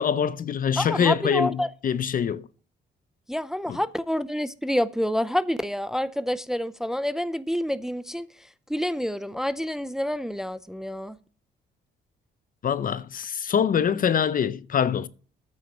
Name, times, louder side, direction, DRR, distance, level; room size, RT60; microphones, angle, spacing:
voice 1, 0.0-2.5 3.7-3.8 12.6-15.1, left 8 dB, 45° left, 0.5 m, -24 dB
voice 2, 0.8-1.7 3.3-11.2, equal, ahead, 0.5 m, -28 dB
9.0 x 6.0 x 7.1 m
cardioid pair, 90°, 20 cm